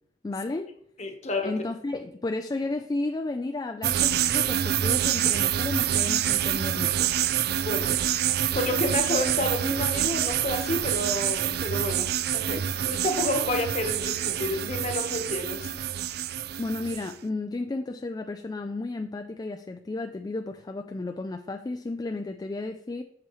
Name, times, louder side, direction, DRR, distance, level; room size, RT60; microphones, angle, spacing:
voice 1, 0.2-0.7 1.4-7.1 16.6-23.0, left 2 dB, 20° left, 0.3 m, -33 dB
voice 2, 1.0-1.5 7.6-7.9 8.4-15.7, left 1 dB, 40° left, 1.2 m, -30 dB
sound 1, 3.8-17.1, right 10 dB, 60° right, 0.4 m, -27 dB
7.5 x 7.0 x 3.1 m
head